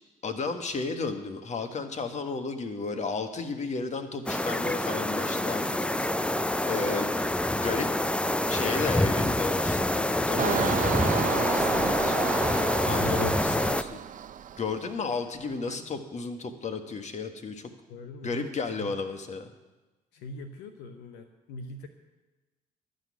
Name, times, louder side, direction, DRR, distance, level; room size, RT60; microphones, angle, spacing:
voice 1, 0.2-6.3 6.7-7.1 7.5-7.9 8.5-12.2 12.8-14.0 14.6-17.7 18.2-19.5, left 4 dB, 45° left, 6 dB, 1.7 m, -33 dB
sound 1, 4.3-13.8, left 1 dB, 5° left, 0.5 m, -26 dB
Engine, 10.4-15.0 15.4-15.8, right 9 dB, 50° right, 0.6 m, -32 dB
voice 2, 12.8-13.5 17.9-19.0 20.1-21.9, left 1 dB, 80° left, 7 dB, 0.9 m, -41 dB
12.0 x 6.6 x 9.7 m, 1.2 s
supercardioid pair, 60°, 17 cm